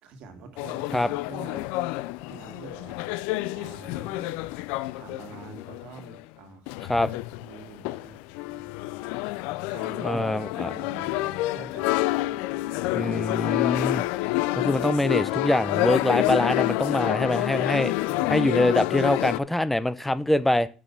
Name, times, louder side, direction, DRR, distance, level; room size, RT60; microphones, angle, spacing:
voice 1, 0.0-1.7 2.3-3.0 3.5-4.4 4.9-7.1 7.4-8.2 8.5-8.7 9.7-10.2 10.6-12.3 18.1-18.4, right 4 dB, 75° right, 6 dB, 1.8 m, -45 dB
sound 1, 0.6-6.2 6.7-19.4, left 19 dB, 90° left, 0.3 m, -28 dB
voice 2, 10.0-10.7 12.9-14.0 14.5-17.9 18.3-20.7, left 1 dB, 10° left, 15 dB, 0.6 m, -24 dB
6.1 x 6.0 x 6.7 m, 0.35 s
supercardioid pair, 85°, 2 cm